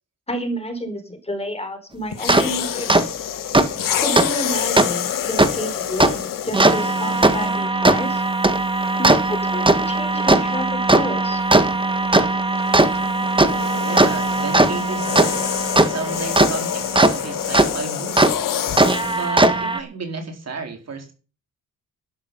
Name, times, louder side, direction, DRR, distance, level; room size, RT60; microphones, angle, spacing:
voice 1, 0.3-3.0 3.9-8.2 9.0-11.4, equal, 20° left, 6 dB, 4.4 m, -30 dB
sound 1, 2.1-7.6 8.5-8.7 12.6-19.3, left 9 dB, 75° left, 1.7 m, -27 dB
sound 2, 2.3-2.4 2.9-3.0 3.5-3.7 4.2-4.3 4.8-4.9 5.4-5.5 6.0-6.1 6.5-17.1 17.5-17.7 18.2-18.3 18.8-19.8, right 2 dB, 15° right, 1.7 m, -18 dB
voice 2, 13.8-15.5 15.8-18.4 19.1-21.1, right 4 dB, 50° right, 4 dB, 4.4 m, -32 dB
12.5 x 11.0 x 5.6 m, 0.35 s
cardioid pair, 85°, 33 cm